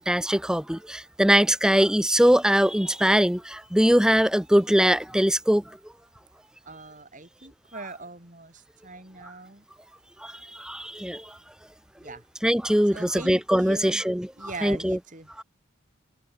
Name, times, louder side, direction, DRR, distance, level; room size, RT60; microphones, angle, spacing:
voice 1, 0.0-5.6 10.2-10.3 10.6-11.2 12.4-14.3 14.6-15.0 15.4-15.5, equal, 5° right, 0.9 m, -21 dB
voice 2, 6.7-9.6 12.0-12.2 12.9-14.0 14.4-15.3, right 2 dB, 40° right, 5.7 m, -41 dB
head